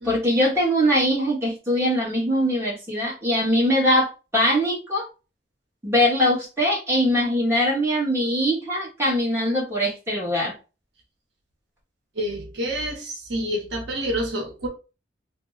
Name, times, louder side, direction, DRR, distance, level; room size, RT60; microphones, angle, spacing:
voice 1, 0.0-5.1 5.8-10.5, equal, 15° right, 1.3 m, -22 dB
voice 2, 12.2-14.7, equal, 75° right, 0.9 m, -28 dB
2.8 x 2.1 x 3.8 m
head